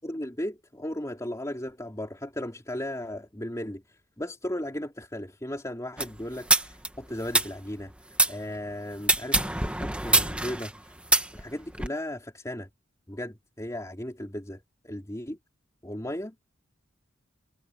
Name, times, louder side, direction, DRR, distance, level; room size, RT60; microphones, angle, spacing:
voice 1, 0.0-3.8 4.2-7.9 8.3-11.0 11.3-12.7 13.1-15.4 15.8-16.3, left 1 dB, 15° left, 3.1 m, -36 dB
sound 1, 6.0-8.3 9.0-11.9, right 2 dB, 5° right, 1.4 m, -25 dB
head